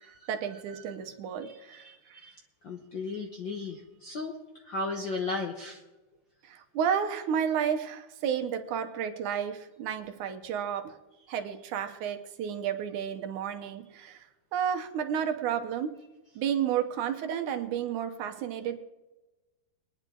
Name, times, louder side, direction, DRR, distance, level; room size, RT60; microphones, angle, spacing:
voice 1, 0.0-2.2 6.4-11.0 11.3-14.2 14.5-16.0 16.4-18.8, right 8 dB, 75° right, 6 dB, 2.3 m, -32 dB
voice 2, 1.4-2.3 2.6-4.4 4.6-5.8, left 3 dB, 65° left, 2 dB, 1.2 m, -36 dB
23.0 x 10.0 x 3.8 m, 1.1 s
omnidirectional pair, 3.7 m